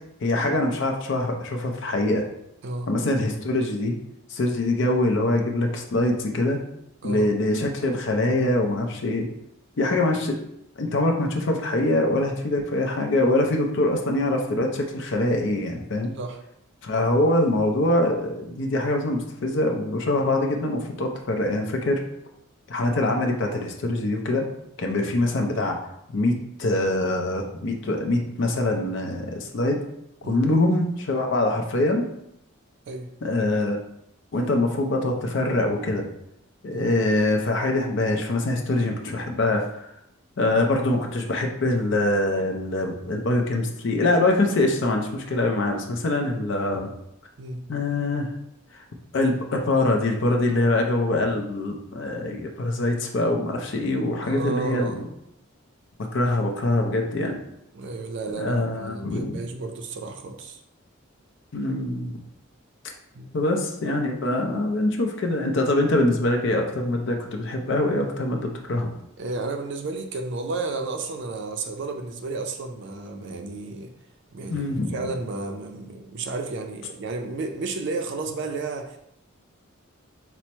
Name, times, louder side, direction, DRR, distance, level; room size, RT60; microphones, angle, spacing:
voice 1, 0.2-2.2 2.9-3.9 4.3-6.6 7.0-9.3 9.8-10.4 10.8-16.1 16.8-22.0 22.7-24.5 24.8-25.8 26.1-29.8 30.2-32.1 33.2-33.8 34.3-36.0 36.6-39.9 40.4-46.9 47.7-48.3 48.7-48.8 49.1-55.0 56.1-57.4 58.4-59.4 61.5-62.1 63.3-68.9 74.5-75.0, left 2 dB, 60° left, 2 dB, 0.5 m, -24 dB
voice 2, 54.2-55.1 57.7-60.6 63.1-63.3 69.2-73.9 74.3-79.0, right 3 dB, 55° right, 4 dB, 0.4 m, -32 dB
4.4 x 2.0 x 4.3 m, 0.78 s
head